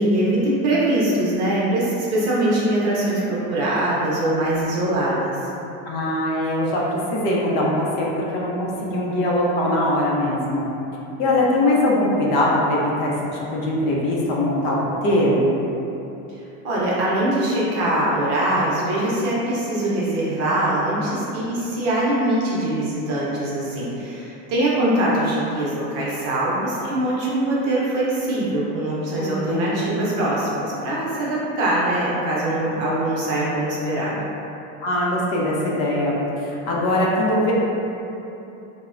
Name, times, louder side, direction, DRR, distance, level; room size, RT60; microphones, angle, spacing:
voice 1, 0.0-5.4 16.6-34.2, right 1 dB, 45° right, -7 dB, 0.7 m, -22 dB
voice 2, 5.8-10.7 11.2-15.6 29.2-29.8 34.8-37.5, left 1 dB, 55° left, -4 dB, 0.5 m, -22 dB
3.1 x 2.1 x 2.4 m, 2.9 s
cardioid pair, 160°, 35 cm